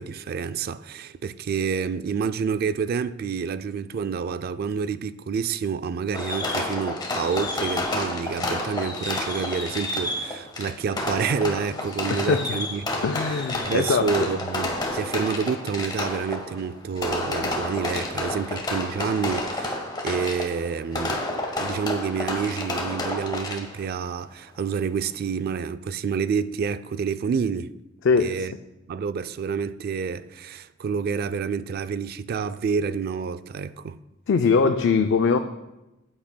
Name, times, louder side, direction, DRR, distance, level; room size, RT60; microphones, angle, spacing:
voice 1, 0.0-12.8 13.7-21.4 21.6-27.7 28.2-28.5 28.9-34.0, right 6 dB, 50° right, 0.3 m, -28 dB
Fireworks, 6.1-23.9, left 2 dB, 20° left, 1.3 m, -30 dB
voice 2, 12.1-12.6 13.0-14.3 28.0-28.5 34.3-35.4, left 5 dB, 65° left, 0.4 m, -22 dB
13.5 x 8.7 x 2.2 m
head